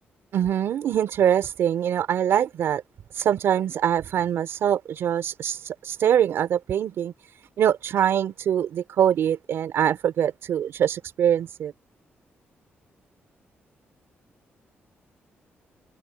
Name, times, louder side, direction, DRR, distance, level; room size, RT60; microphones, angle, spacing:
voice 1, 0.3-2.8 3.1-7.1 7.6-11.7, right 9 dB, 75° right, 3.6 m, -23 dB
wide cardioid pair, 145°, 4 cm